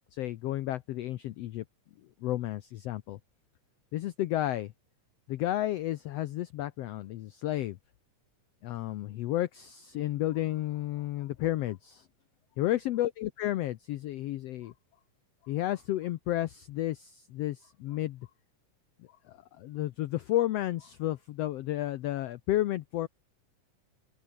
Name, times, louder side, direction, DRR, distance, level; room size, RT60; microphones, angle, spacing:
voice 1, 0.1-1.6 2.2-3.2 3.9-4.7 5.3-7.8 8.6-12.1 12.6-14.7 15.4-18.3 19.3-23.1, left 14 dB, 80° left, 1.4 m, -32 dB
open air
omnidirectional pair, 3.7 m